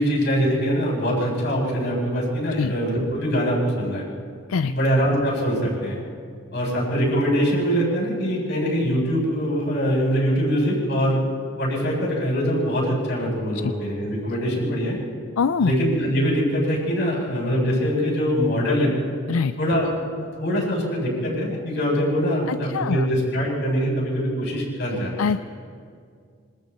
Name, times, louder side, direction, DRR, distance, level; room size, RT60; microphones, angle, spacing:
voice 1, 0.0-4.1 4.7-6.0 6.5-11.2 11.6-15.0 15.6-18.9 19.6-19.9 20.4-25.1, equal, 55° left, -4 dB, 7.7 m, -23 dB
voice 2, 15.4-15.7 19.3-19.5 22.5-23.1 25.2-25.5, left 5 dB, 75° left, 12 dB, 0.4 m, -23 dB
27.0 x 26.5 x 4.2 m, 2.2 s
head